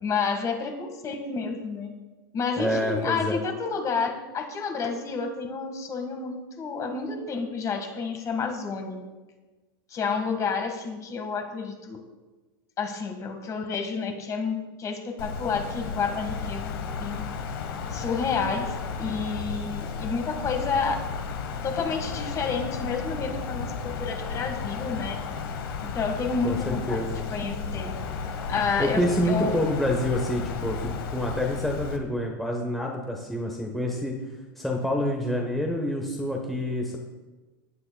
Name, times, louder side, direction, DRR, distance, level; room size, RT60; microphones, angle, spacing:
voice 1, 0.0-1.9 2.3-9.1 9.9-12.0 12.8-17.3 17.9-21.0 21.6-25.2 25.8-27.0 27.3-28.0 28.5-29.6, left 5 dB, 25° left, 5 dB, 1.7 m, -30 dB
voice 2, 2.6-3.4 26.4-27.2 28.8-34.2 34.6-37.0, left 1 dB, ahead, 0 dB, 1.2 m, -27 dB
Wind, 15.2-32.0, left 5 dB, 75° left, 1.4 m, -33 dB
16.5 x 9.6 x 2.3 m, 1.2 s
supercardioid pair, 130°, 12 cm